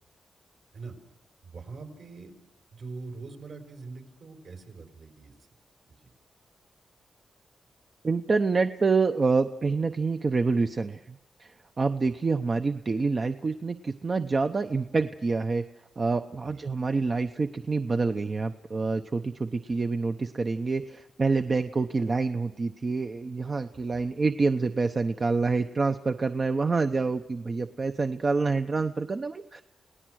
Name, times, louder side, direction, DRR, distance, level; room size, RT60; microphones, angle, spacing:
voice 1, 1.4-2.3 2.7-5.3 5.9-6.0 16.4-16.7, right 4 dB, 70° right, 4 dB, 4.9 m, -43 dB
voice 2, 8.0-15.6 16.0-29.6, right 4 dB, 40° right, 7 dB, 0.8 m, -27 dB
29.0 x 18.0 x 6.3 m, 0.86 s
cardioid pair, 85°, 0 cm